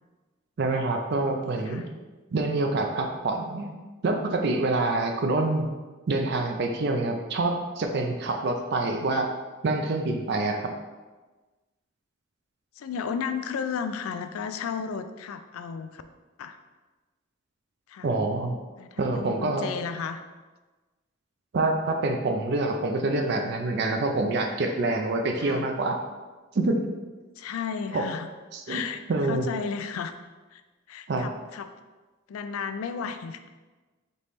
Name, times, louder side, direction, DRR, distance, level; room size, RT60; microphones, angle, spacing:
voice 1, 0.6-1.8 2.3-3.7 4.0-5.7 6.1-9.3 9.6-10.7 18.0-18.5 19.0-19.7 21.5-26.0 26.5-26.8 27.9-28.0 28.5-28.8 29.1-29.5 31.1-31.3, right 2 dB, 55° right, 3 dB, 0.4 m, -26 dB
voice 2, 1.5-1.9 12.8-16.0 16.4-16.6 17.9-18.1 18.8-20.2 25.4-25.7 27.4-28.3 28.7-30.1 30.5-30.6 30.9-31.7 32.3-33.5, left 6 dB, 90° left, 9 dB, 0.3 m, -34 dB
4.2 x 3.1 x 3.4 m, 1.2 s
head